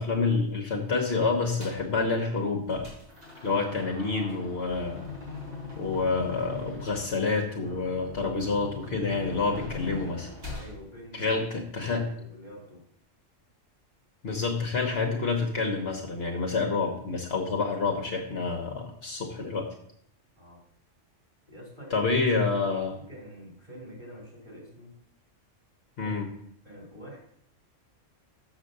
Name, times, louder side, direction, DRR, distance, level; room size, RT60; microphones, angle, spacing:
voice 1, 0.0-2.9 3.4-5.1 5.8-10.3 11.1-12.0 14.2-19.7 21.9-22.9 26.0-26.3, left 4 dB, 60° left, 2 dB, 1.2 m, -28 dB
sound 1, 1.6-1.9 2.4-10.7, left 3 dB, 50° right, 2.4 m, -41 dB
voice 2, 3.9-4.4 10.5-11.4 11.7-12.9 20.4-20.6 21.5-22.1 22.4-25.0 26.0-26.2 26.6-27.2, equal, 20° right, -4 dB, 3.3 m, -46 dB
6.6 x 5.0 x 6.6 m, 0.69 s
omnidirectional pair, 1.3 m